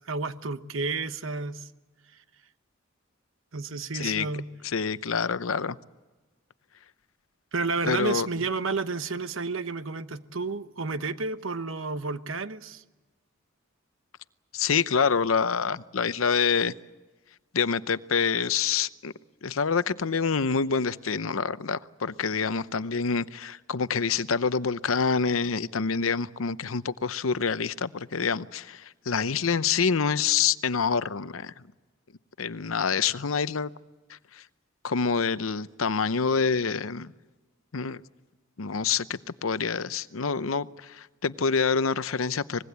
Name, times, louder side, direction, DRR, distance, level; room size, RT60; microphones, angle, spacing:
voice 1, 0.0-1.7 3.5-4.5 7.5-12.8, right 4 dB, 70° right, 1.1 m, -31 dB
voice 2, 3.9-4.3 4.6-5.8 7.9-8.3 14.5-16.7 17.5-19.1 19.4-31.5 32.4-33.7 34.3-34.4 34.8-37.1 37.7-38.0 38.6-42.6, left 5 dB, 85° left, 0.8 m, -26 dB
25.0 x 21.0 x 8.2 m
head